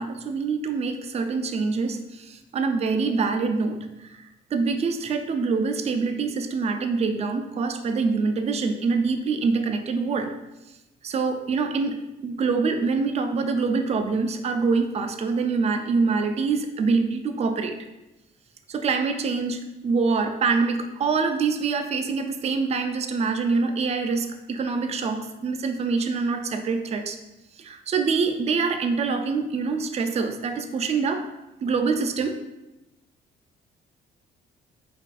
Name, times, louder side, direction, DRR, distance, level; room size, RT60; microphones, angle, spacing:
voice 1, 0.0-10.3 11.0-17.8 18.7-27.2 27.6-31.3 31.6-32.4, right 4 dB, 35° right, 7 dB, 0.4 m, -25 dB
5.7 x 2.5 x 2.3 m, 0.97 s
cardioid pair, 90°, 20 cm